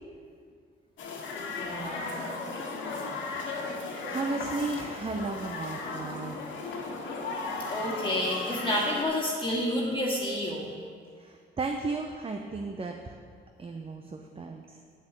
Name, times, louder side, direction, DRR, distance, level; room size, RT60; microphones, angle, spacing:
sound 1, 1.0-9.0, left 3 dB, 70° left, 1.8 m, -36 dB
voice 1, 1.6-2.1 7.7-10.7, left 1 dB, 25° left, -4 dB, 1.9 m, -29 dB
voice 2, 4.1-6.4 11.2-13.2 13.6-14.8, right 3 dB, 30° right, 3 dB, 0.7 m, -34 dB
9.0 x 5.6 x 7.7 m, 2.1 s
cardioid pair, 90°, 20 cm